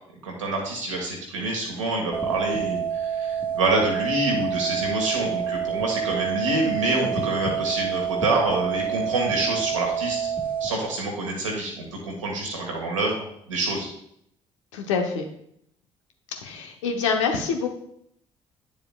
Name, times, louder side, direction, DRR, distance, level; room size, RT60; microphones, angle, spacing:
voice 1, 0.2-10.2 10.6-13.9, right 2 dB, 85° right, 0 dB, 1.4 m, -27 dB
sound 1, 2.1-10.7, right 8 dB, 10° left, 1.6 m, -28 dB
voice 2, 14.7-15.2 16.4-17.7, left 5 dB, 75° left, 4 dB, 0.9 m, -25 dB
9.0 x 7.0 x 2.3 m, 0.71 s
figure-of-eight pair, 50°, 16 cm